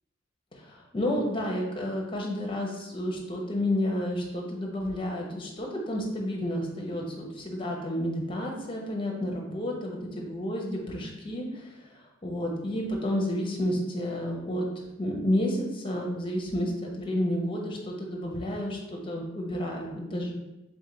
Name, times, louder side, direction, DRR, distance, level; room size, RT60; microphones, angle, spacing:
voice 1, 0.5-11.7 12.2-20.3, left 1 dB, 25° left, -1 dB, 0.7 m, -31 dB
3.6 x 3.4 x 3.8 m, 0.99 s
head